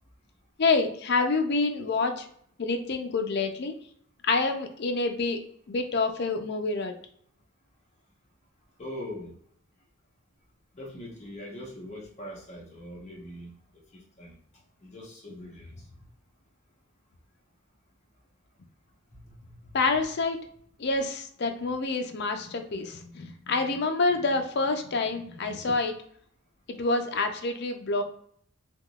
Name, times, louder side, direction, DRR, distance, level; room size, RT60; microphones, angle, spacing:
voice 1, 0.6-2.2 2.6-3.7 4.2-6.9 19.7-20.4 20.8-25.9 26.7-28.0, left 3 dB, 50° left, 5 dB, 0.5 m, -27 dB
voice 2, 8.8-9.3 10.7-13.5 13.9-14.3 14.8-15.7, left 1 dB, 30° left, -2 dB, 1.0 m, -41 dB
3.5 x 2.9 x 2.3 m, 0.63 s
head